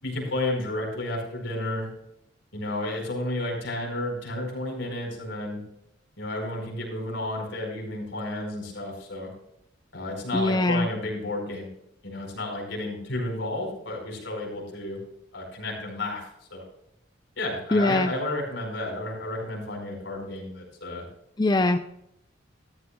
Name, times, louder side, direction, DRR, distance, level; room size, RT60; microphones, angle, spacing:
voice 1, 0.0-1.9 2.5-5.6 6.2-9.3 9.9-11.7 12.0-15.0 15.3-16.6 17.4-21.0, left 1 dB, 75° left, 0 dB, 5.0 m, -32 dB
voice 2, 10.3-10.9 17.7-18.1 21.4-21.8, left 2 dB, 20° left, 8 dB, 0.5 m, -22 dB
14.0 x 13.5 x 2.3 m, 0.79 s
head